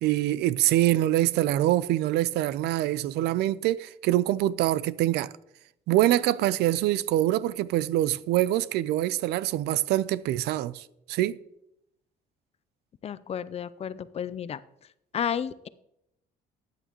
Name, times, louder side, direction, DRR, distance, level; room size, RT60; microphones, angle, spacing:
voice 1, 0.0-5.3 5.9-11.4, right 14 dB, 80° right, 0.4 m, -25 dB
voice 2, 13.0-14.6 15.1-15.7, left 8 dB, 35° left, 0.5 m, -32 dB
13.0 x 9.0 x 3.0 m
cardioid pair, 110°, 17 cm